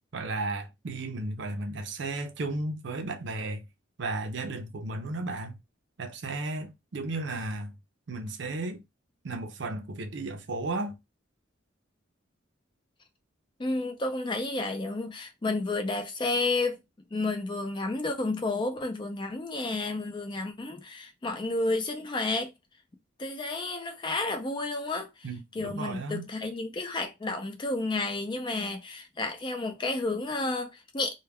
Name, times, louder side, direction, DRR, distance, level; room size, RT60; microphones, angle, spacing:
voice 1, 0.1-3.6 4.0-5.5 6.0-7.7 8.1-8.8 9.2-11.0 25.2-26.3, right 2 dB, 60° right, 0.5 m, -34 dB
voice 2, 13.6-16.8 17.1-22.5 23.2-25.1 25.5-31.1, left 2 dB, 25° left, 0.4 m, -31 dB
2.2 x 2.2 x 3.4 m
head